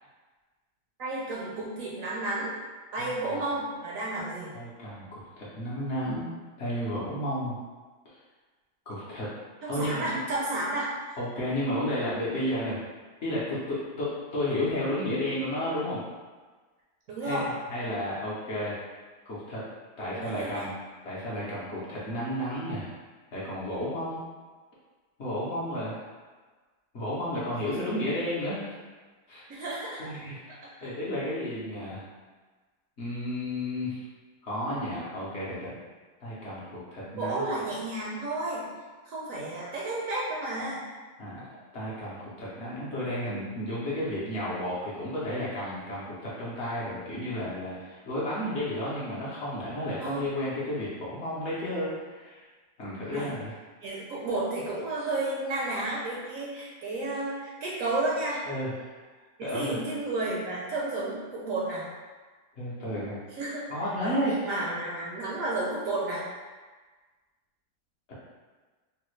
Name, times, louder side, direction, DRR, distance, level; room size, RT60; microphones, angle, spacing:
voice 1, 1.0-2.5 2.9-4.5 9.6-10.9 17.1-17.5 20.1-20.7 27.8-27.9 29.5-30.1 30.5-30.9 37.0-38.7 39.0-40.8 50.0-50.3 53.0-53.4 53.8-58.4 59.4-61.9 63.3-63.7 64.0-64.2 64.4-66.2, right 2 dB, 70° right, -5 dB, 0.8 m, -32 dB
voice 2, 3.0-3.4 4.5-6.3 6.6-7.5 8.0-8.1 8.9-9.3 9.7-10.2 11.2-12.8 13.2-16.0 17.2-17.4 17.7-18.7 19.3-19.6 20.0-20.7 21.0-22.9 23.3-24.2 25.2-26.0 26.9-28.8 29.3-29.5 30.0-32.0 33.0-34.0 34.4-35.7 36.2-37.7 41.2-41.4 41.7-52.4 52.8-53.5 58.5-58.9 59.4-59.8 62.6-63.2 63.7-64.4 68.1-68.2, left 1 dB, 55° left, -8 dB, 0.8 m, -32 dB
3.2 x 2.2 x 3.0 m, 1.4 s
omnidirectional pair, 1.8 m